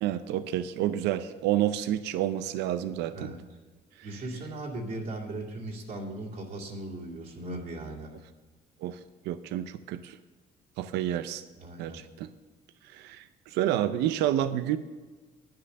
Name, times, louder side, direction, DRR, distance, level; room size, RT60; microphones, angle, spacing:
voice 1, 0.0-3.3 8.8-9.0 9.3-10.2 10.8-11.4 11.8-12.3 12.9-14.8, right 12 dB, 85° right, 12 dB, 0.6 m, -29 dB
voice 2, 4.0-8.1 11.6-12.0, right 2 dB, 50° right, -2 dB, 2.4 m, -38 dB
10.5 x 9.7 x 6.6 m, 1.3 s
cardioid pair, 110°, 17 cm